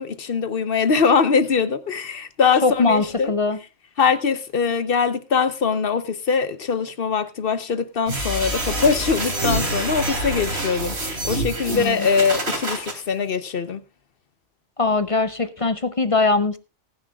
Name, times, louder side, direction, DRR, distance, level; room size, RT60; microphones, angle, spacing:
voice 1, 0.0-3.3 4.0-11.0 11.2-13.8, left 5 dB, 50° left, 1.0 m, -22 dB
voice 2, 2.6-3.6 11.7-12.0 14.8-16.6, left 3 dB, 35° left, 0.6 m, -21 dB
sound 1, 8.1-12.9, right 1 dB, 55° right, 3.2 m, -26 dB
19.5 x 10.0 x 2.4 m
omnidirectional pair, 1.3 m